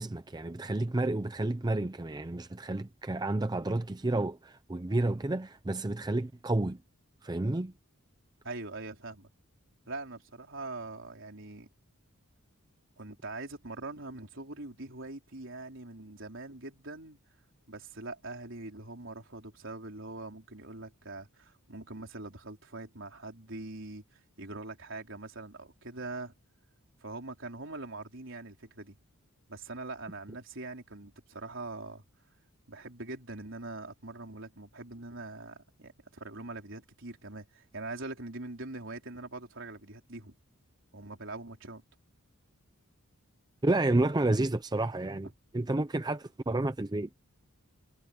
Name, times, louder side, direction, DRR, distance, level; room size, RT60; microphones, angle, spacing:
voice 1, 0.0-6.8 7.2-7.7 43.6-47.1, right 2 dB, 20° right, 0.5 m, -30 dB
voice 2, 8.4-9.3 9.9-11.7 13.0-17.2 17.7-26.3 27.0-29.0 29.5-32.0 32.7-40.3 40.9-41.8, right 2 dB, 60° right, 4.4 m, -43 dB
head